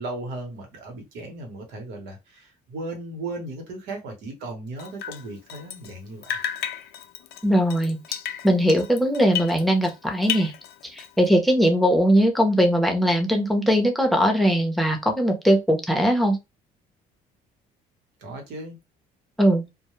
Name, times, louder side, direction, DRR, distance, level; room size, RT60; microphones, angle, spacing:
voice 1, 0.0-6.4 18.2-18.8, right 2 dB, 85° right, 1.0 m, -36 dB
Drip, 4.8-6.0 6.2-10.0 10.2-11.3, left 10 dB, 75° left, 0.4 m, -33 dB
voice 2, 7.4-8.0 8.4-10.5 10.9-16.4 19.4-19.6, equal, ahead, 0.7 m, -20 dB
2.2 x 2.1 x 3.0 m
cardioid pair, 110°, 17 cm